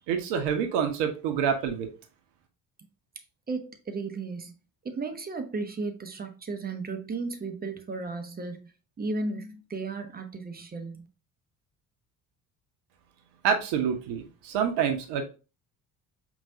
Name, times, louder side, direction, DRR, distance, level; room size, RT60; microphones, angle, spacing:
voice 1, 0.1-1.9 13.4-15.2, right 7 dB, 60° right, 1.0 m, -27 dB
voice 2, 3.5-4.5 4.8-8.7 9.0-11.1, right 3 dB, 20° right, 0.8 m, -34 dB
4.9 x 3.1 x 2.6 m
figure-of-eight pair, 50°, 47 cm